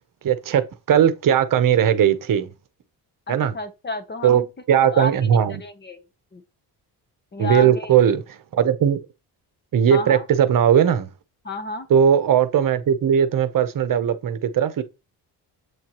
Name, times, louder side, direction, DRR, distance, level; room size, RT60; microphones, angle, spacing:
voice 1, 0.2-0.6 0.9-2.5 3.3-3.5 4.2-4.4 4.7-5.6 7.4-9.0 9.7-11.1 11.9-14.8, right 8 dB, 55° right, 0.9 m, -18 dB
voice 2, 3.3-4.5 4.9-5.1 5.6-6.0 6.3-6.4 7.3-7.9 9.9-10.2 11.4-11.9, left 2 dB, 25° left, 1.0 m, -31 dB
8.0 x 4.4 x 3.0 m
cardioid pair, 125°, 41 cm